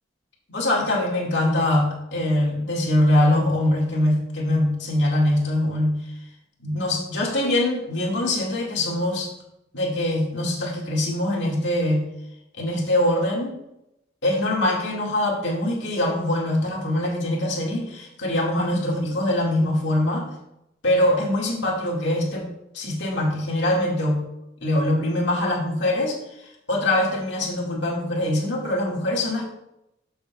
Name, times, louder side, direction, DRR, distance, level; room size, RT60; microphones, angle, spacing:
voice 1, 0.5-6.0 6.6-9.3 9.7-12.0 12.6-13.5 14.2-20.3 20.8-22.5 22.7-24.2 24.6-29.5, left 1 dB, 65° left, -2 dB, 2.0 m, -23 dB
13.0 x 6.6 x 2.3 m, 0.86 s
head